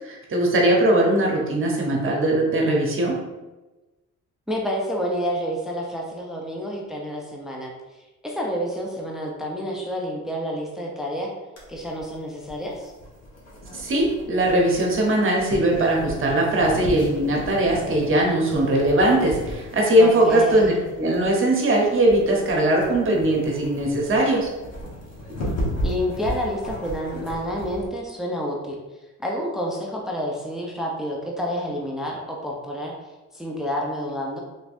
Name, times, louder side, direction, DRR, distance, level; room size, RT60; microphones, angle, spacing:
voice 1, 0.0-3.2 13.7-20.7 21.0-24.5, right 1 dB, 45° right, -1 dB, 1.0 m, -20 dB
voice 2, 4.5-7.7 8.2-11.3 11.7-12.9 20.0-20.8 25.8-28.8 29.2-32.9 33.3-34.4, equal, ahead, -2 dB, 0.6 m, -29 dB
sound 1, 11.6-27.9, equal, 55° left, 1.2 m, -35 dB
3.4 x 3.1 x 2.6 m, 1.1 s
cardioid pair, 90°, 30 cm